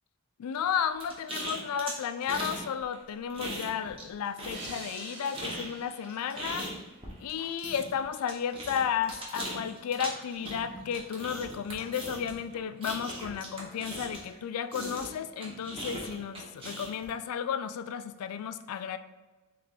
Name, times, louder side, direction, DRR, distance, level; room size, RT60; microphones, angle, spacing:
voice 1, 0.4-6.7 7.2-19.0, left 8 dB, 85° left, 11 dB, 0.3 m, -33 dB
sound 1, 1.0-2.6 2.9-4.1 4.4-14.4 14.7-17.1, right 1 dB, 25° right, 1.0 m, -39 dB
sound 2, 4.5-7.8, right 2 dB, 50° right, 1.0 m, -47 dB
3.5 x 3.3 x 3.9 m, 1.2 s
head